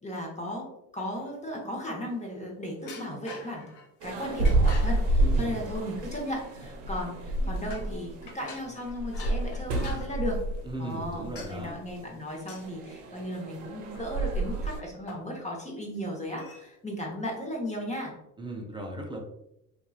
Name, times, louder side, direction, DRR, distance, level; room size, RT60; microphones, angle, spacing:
voice 1, 0.0-0.6 0.9-3.6 4.0-10.4 10.8-18.1, equal, 15° left, -1 dB, 0.8 m, -35 dB
sound 1, 1.1-1.8 2.8-3.9 4.4-5.1 6.0-6.1 6.6-7.0 7.5-8.0 8.3-10.1 10.9-11.0 11.3-11.5 12.4-12.7 13.9-14.5 14.8-14.9 15.1-15.5 16.4-16.7, left 4 dB, 60° left, 0.7 m, -47 dB
sound 2, 4.0-14.8, right 2 dB, 75° right, 0.7 m, -29 dB
voice 2, 5.2-5.5 10.6-11.7 18.4-19.2, right 1 dB, 10° right, 0 dB, 0.4 m, -37 dB
2.8 x 2.4 x 2.4 m, 0.81 s
supercardioid pair, 80°, 48 cm